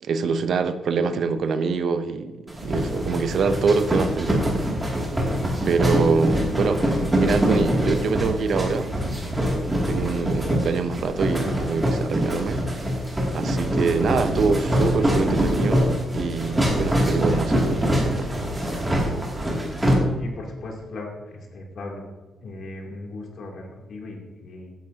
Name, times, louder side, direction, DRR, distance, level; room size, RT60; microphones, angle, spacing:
voice 1, 0.0-4.6 5.6-8.9 9.9-12.6 13.3-18.4, right 5 dB, 55° right, 0.7 m, -25 dB
sound 1, 2.5-19.9, equal, 10° right, 2.5 m, -24 dB
voice 2, 20.2-22.1 22.4-24.7, left 2 dB, 55° left, 2.8 m, -38 dB
15.0 x 10.5 x 2.8 m
wide cardioid pair, 160°, 0 cm